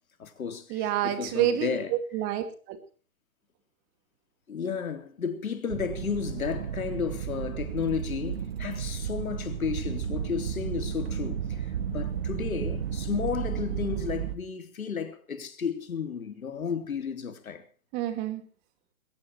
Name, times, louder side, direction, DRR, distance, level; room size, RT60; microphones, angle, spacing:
voice 1, 0.2-2.2 4.5-17.6, left 6 dB, 75° left, 3.6 m, -33 dB
voice 2, 0.7-2.8 17.9-18.4, right 11 dB, 20° right, 2.3 m, -28 dB
sound 1, 5.7-14.4, right 8 dB, 45° right, 1.8 m, -33 dB
21.5 x 18.5 x 3.2 m
hypercardioid pair, 150°, 42 cm